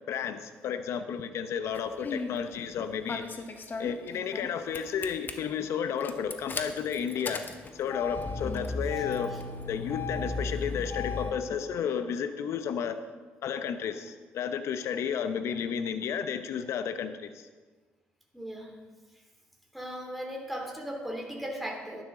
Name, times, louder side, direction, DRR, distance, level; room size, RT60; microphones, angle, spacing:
voice 1, 0.1-3.4 3.8-7.4 7.7-9.3 9.7-13.0 13.4-17.5, left 7 dB, 70° left, 10 dB, 0.8 m, -32 dB
Engine starting, 1.8-2.3 3.1-4.5 4.7-5.3 6.0-11.3, left 3 dB, 40° left, 1.2 m, -35 dB
voice 2, 18.3-18.7 19.7-22.0, equal, ahead, 0 dB, 2.7 m, -37 dB
11.5 x 10.5 x 3.8 m, 1.3 s
supercardioid pair, 60°, 5 cm